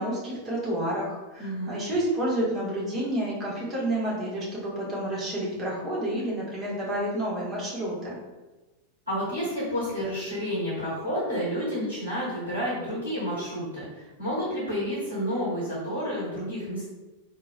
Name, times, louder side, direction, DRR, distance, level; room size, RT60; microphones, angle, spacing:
voice 1, 0.0-8.2, right 1 dB, 25° right, -6 dB, 1.4 m, -29 dB
voice 2, 1.4-1.7 9.1-16.9, equal, 80° right, -9 dB, 1.4 m, -30 dB
3.8 x 2.9 x 2.3 m, 1.2 s
figure-of-eight pair, 90°, 0 cm